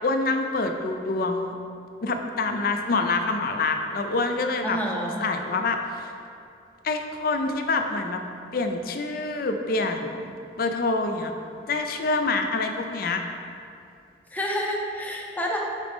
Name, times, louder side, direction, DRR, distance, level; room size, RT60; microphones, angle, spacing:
voice 1, 0.0-1.5 2.0-6.1 6.8-8.2 8.5-11.3 11.7-13.2, left 3 dB, 55° left, 5 dB, 0.4 m, -26 dB
voice 2, 4.6-5.3 14.3-15.6, equal, 10° left, -1 dB, 0.6 m, -29 dB
8.1 x 3.8 x 3.6 m, 2.5 s
head